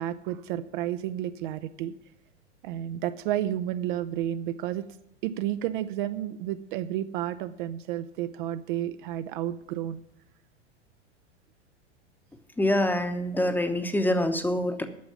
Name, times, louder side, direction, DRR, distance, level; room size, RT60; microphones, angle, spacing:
voice 1, 0.0-1.9 2.6-4.9 5.2-10.0, right 12 dB, 45° right, 12 dB, 0.6 m, -31 dB
voice 2, 12.6-14.9, left 1 dB, 5° left, 8 dB, 0.9 m, -25 dB
9.4 x 7.0 x 9.1 m, 0.83 s
figure-of-eight pair, 90°, 35 cm